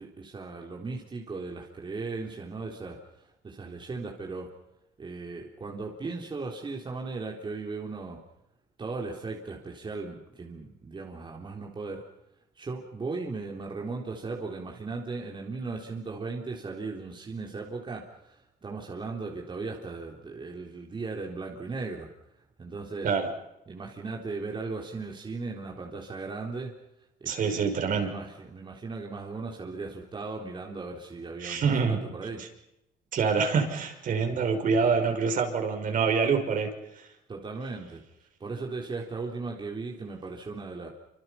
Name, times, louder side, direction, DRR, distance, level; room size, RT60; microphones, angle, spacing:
voice 1, 0.0-4.5 5.0-8.2 8.8-12.0 12.6-22.1 22.6-23.1 23.7-26.7 27.2-32.4 37.3-38.0 38.4-40.9, right 3 dB, 30° right, 0 dB, 4.0 m, -37 dB
voice 2, 27.3-28.1 31.4-32.0 33.1-36.7, right 5 dB, 55° right, 4 dB, 5.8 m, -26 dB
27.5 x 26.5 x 5.8 m, 0.88 s
cardioid pair, 110°, 17 cm